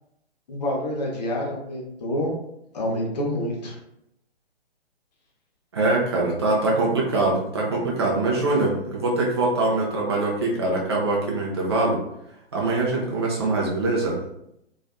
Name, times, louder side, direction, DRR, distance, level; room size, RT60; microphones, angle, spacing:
voice 1, 0.5-2.3 2.7-3.8, left 1 dB, 40° left, -1 dB, 0.6 m, -27 dB
voice 2, 5.7-12.0 12.5-14.2, right 2 dB, 25° right, -3 dB, 0.4 m, -23 dB
2.5 x 2.4 x 2.2 m, 0.79 s
figure-of-eight pair, 130°, 32 cm